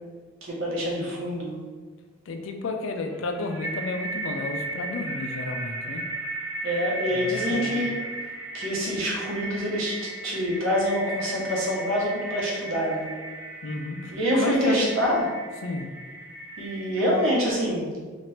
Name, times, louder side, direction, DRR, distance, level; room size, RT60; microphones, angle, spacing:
voice 1, 0.4-1.6 6.6-7.9 8.5-13.1 14.1-15.2 16.6-17.9, equal, 80° right, -4 dB, 0.9 m, -26 dB
voice 2, 2.3-6.0 7.1-7.9 13.6-14.9 15.6-15.9, left 3 dB, 70° left, 5 dB, 0.4 m, -32 dB
sound 1, 3.1-17.4, right 2 dB, 5° right, 0.4 m, -36 dB
2.9 x 2.5 x 3.1 m, 1.4 s
head